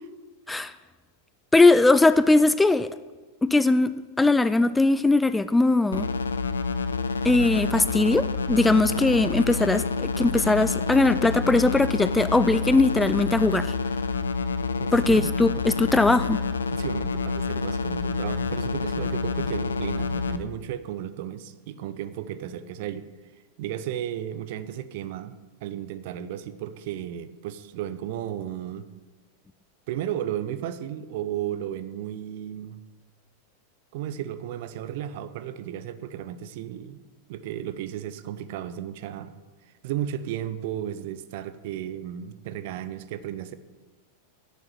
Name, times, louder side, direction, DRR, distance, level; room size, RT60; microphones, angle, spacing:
voice 1, 1.5-2.9 3.4-6.1 7.2-13.7 14.9-16.4, left 2 dB, 10° left, 14 dB, 0.4 m, -20 dB
sound 1, 5.9-20.4, left 4 dB, 70° left, 0.6 m, -28 dB
voice 2, 14.8-15.4 16.7-23.1 23.6-28.9 29.9-32.8 33.9-37.0 37.3-39.4 39.8-43.5, right 11 dB, 50° right, 13 dB, 0.7 m, -34 dB
11.0 x 8.4 x 7.7 m, 1.3 s
figure-of-eight pair, 90°, 0 cm